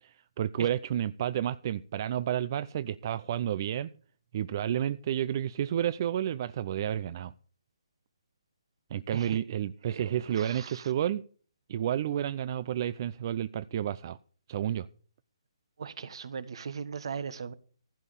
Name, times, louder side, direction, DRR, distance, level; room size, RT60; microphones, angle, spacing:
voice 1, 0.0-3.9 4.3-7.3 8.9-11.2 11.7-14.2 14.5-14.9, right 10 dB, 40° right, 0.5 m, -31 dB
voice 2, 9.8-10.9 15.8-17.5, right 6 dB, 60° right, 1.2 m, -39 dB
15.0 x 5.3 x 8.5 m
hypercardioid pair, 150°, 3 cm